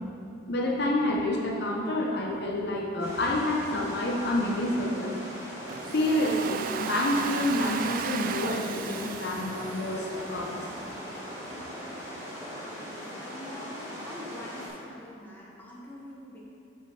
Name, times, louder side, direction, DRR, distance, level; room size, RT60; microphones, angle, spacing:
voice 1, 0.5-5.1 5.9-10.6, left 1 dB, 55° left, -1 dB, 0.8 m, -28 dB
sound 1, 3.0-14.7, equal, 15° right, 1.6 m, -40 dB
Domestic sounds home sounds, 5.7-10.6, right 7 dB, 45° right, 0.3 m, -36 dB
voice 2, 11.4-11.8 12.0-16.4, left 1 dB, 10° left, -5 dB, 1.1 m, -46 dB
5.8 x 5.3 x 5.6 m, 2.7 s
head